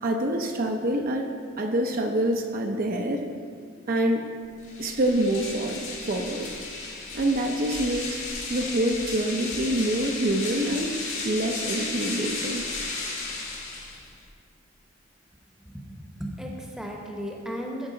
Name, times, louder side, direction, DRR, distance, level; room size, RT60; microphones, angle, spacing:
voice 1, 0.0-1.3 1.6-3.2 3.9-4.3 4.8-6.5 7.1-12.6, right 1 dB, 45° right, 2 dB, 0.5 m, -26 dB
sound 1, 4.6-14.2, left 3 dB, 70° left, 1.9 m, -34 dB
voice 2, 15.6-17.9, equal, 5° right, 0 dB, 0.8 m, -35 dB
12.5 x 4.8 x 3.8 m, 2.1 s
head